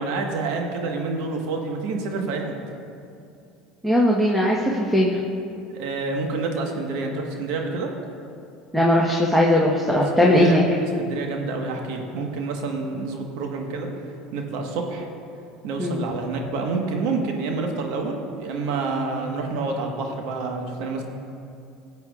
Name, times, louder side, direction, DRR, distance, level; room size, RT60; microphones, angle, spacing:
voice 1, 0.0-2.5 5.7-7.9 10.2-10.6 11.0-13.9 14.3-15.1 15.6-21.0, right 3 dB, 70° right, 2 dB, 1.4 m, -28 dB
voice 2, 3.8-5.2 8.7-10.6 15.8-16.0, left 1 dB, 5° right, -3 dB, 1.2 m, -19 dB
17.0 x 8.3 x 2.5 m, 2.5 s
hypercardioid pair, 80°, 0 cm